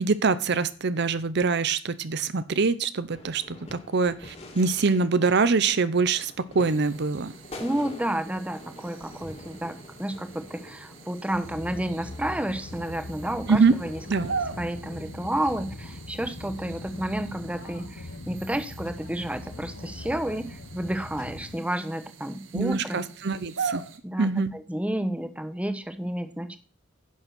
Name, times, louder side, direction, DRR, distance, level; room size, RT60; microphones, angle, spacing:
voice 1, 0.0-7.3 13.5-13.7 14.1-14.3 22.5-23.8 24.2-24.5, right 4 dB, 60° right, 14 dB, 0.7 m, -24 dB
sound 1, 3.1-14.5, left 1 dB, 35° left, 2.6 m, -46 dB
sound 2, 6.6-24.0, right 5 dB, 80° right, 1.4 m, -41 dB
voice 2, 7.6-14.0 14.6-23.0 24.0-26.6, right 1 dB, 5° right, 9 dB, 1.1 m, -31 dB
sound 3, 11.3-21.6, left 2 dB, 75° left, 1.1 m, -41 dB
10.5 x 7.2 x 6.0 m, 0.37 s
head